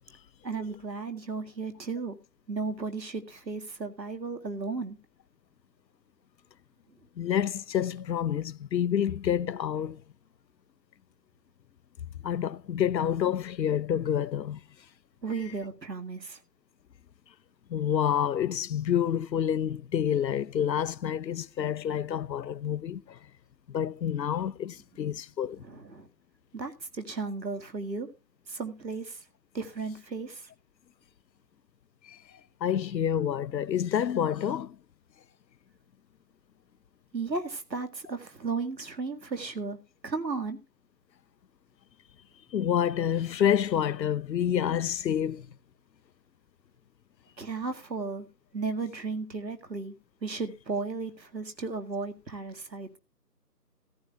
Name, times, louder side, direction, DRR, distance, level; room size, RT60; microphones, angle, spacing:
voice 1, 0.4-2.2 2.5-5.0 15.2-16.4 25.6-26.1 26.5-28.1 28.5-29.3 29.5-30.5 37.1-39.8 40.0-40.6 47.4-48.3 48.5-50.0 50.2-53.0, right 4 dB, 90° right, 2.0 m, -34 dB
voice 2, 7.2-10.0 12.2-14.9 17.7-23.3 23.7-25.6 32.0-34.8 42.5-45.5, left 9 dB, 90° left, 0.6 m, -28 dB
14.5 x 14.0 x 2.3 m
figure-of-eight pair, 175°, 49 cm